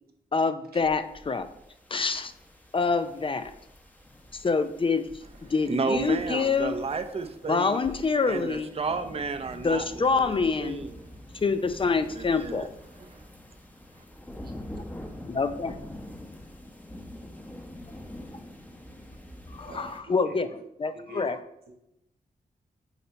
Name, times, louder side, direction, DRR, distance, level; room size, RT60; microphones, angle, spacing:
voice 1, 0.3-1.5 1.9-2.3 2.7-3.5 4.3-5.1 5.5-6.8 7.5-8.7 9.6-10.8 11.4-12.7 15.3-15.7 19.5-20.5 20.8-21.4, left 4 dB, 35° left, 10 dB, 0.4 m, -26 dB
sound 1, 0.8-20.0, left 1 dB, 10° left, 0.8 m, -45 dB
voice 2, 5.7-7.7 8.3-9.9 10.1-10.9 12.2-12.7 13.1-13.2, right 4 dB, 40° right, 7 dB, 0.6 m, -32 dB
voice 3, 19.6-20.6 20.9-21.3 21.6-21.7, right 1 dB, 75° right, 2 dB, 1.1 m, -43 dB
8.0 x 2.8 x 4.3 m, 0.81 s
cardioid pair, 75°, 16 cm